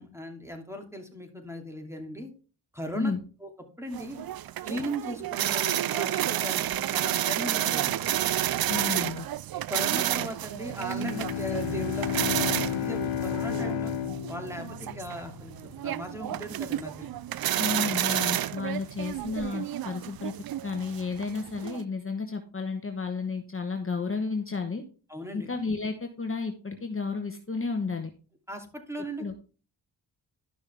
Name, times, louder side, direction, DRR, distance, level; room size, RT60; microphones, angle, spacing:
voice 1, 0.0-2.3 2.7-3.1 3.4-3.5 3.8-4.2 4.6-8.0 9.7-13.9 14.3-17.1 25.1-25.5 28.5-29.2, equal, 5° right, 4 dB, 2.7 m, -38 dB
sound 1, 3.9-21.8, right 12 dB, 55° right, 0.5 m, -30 dB
voice 2, 8.7-9.3 17.6-20.3 20.6-24.8 25.3-28.1 29.2-29.3, left 4 dB, 30° left, 5 dB, 1.3 m, -32 dB
Bowed string instrument, 10.8-15.7, left 12 dB, 90° left, 0.5 m, -32 dB
12.0 x 6.2 x 3.5 m, 0.35 s
cardioid pair, 60°, 43 cm